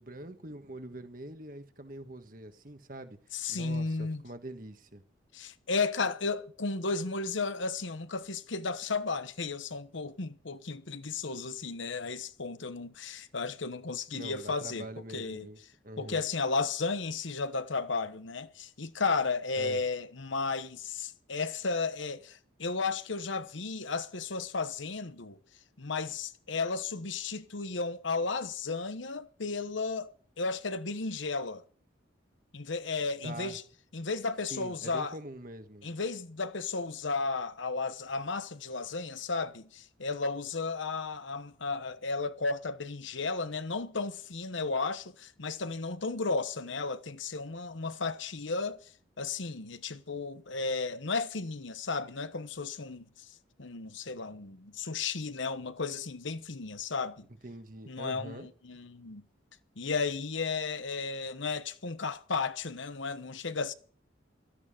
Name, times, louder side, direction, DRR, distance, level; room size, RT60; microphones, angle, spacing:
voice 1, 0.0-5.0 14.1-15.6 15.8-16.2 19.6-19.8 33.2-33.5 34.5-35.9 57.4-58.5, right 1 dB, 45° right, 1.6 m, -44 dB
voice 2, 3.3-4.2 5.3-14.9 15.1-15.5 16.0-25.4 25.8-31.6 32.5-33.6 33.9-35.2 35.8-48.9 49.2-53.3 53.6-57.3 57.9-59.2 59.8-63.7, left 4 dB, 75° left, 1.1 m, -34 dB
17.0 x 13.5 x 5.1 m
head